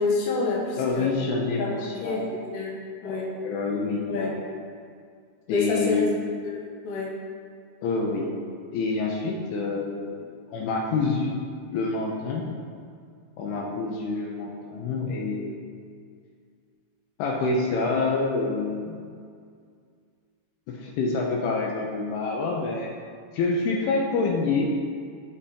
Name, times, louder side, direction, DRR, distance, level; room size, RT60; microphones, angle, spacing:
voice 1, 0.0-1.1 1.6-2.7 3.0-3.3 4.1-4.3 5.5-6.1 6.5-7.2, left 3 dB, 60° left, -5 dB, 2.1 m, -28 dB
voice 2, 0.7-2.3 3.0-4.4 5.5-6.0 7.8-8.3 8.7-11.4 11.7-12.5 13.4-15.5 17.2-19.0 20.7-22.9 23.3-24.7, left 3 dB, 80° left, -1 dB, 2.6 m, -27 dB
12.0 x 4.1 x 3.7 m, 2.2 s
omnidirectional pair, 4.8 m